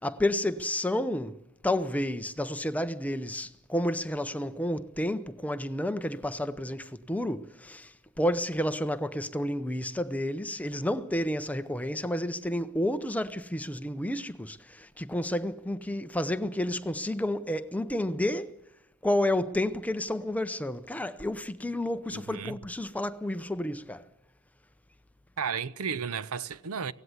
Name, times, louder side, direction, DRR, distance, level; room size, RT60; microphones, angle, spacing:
voice 1, 0.0-1.4 1.6-18.6 19.0-24.0, left 1 dB, 5° left, 0.7 m, -30 dB
voice 2, 22.1-22.6 25.4-26.9, right 6 dB, 70° right, 0.6 m, -33 dB
17.5 x 16.0 x 9.5 m
head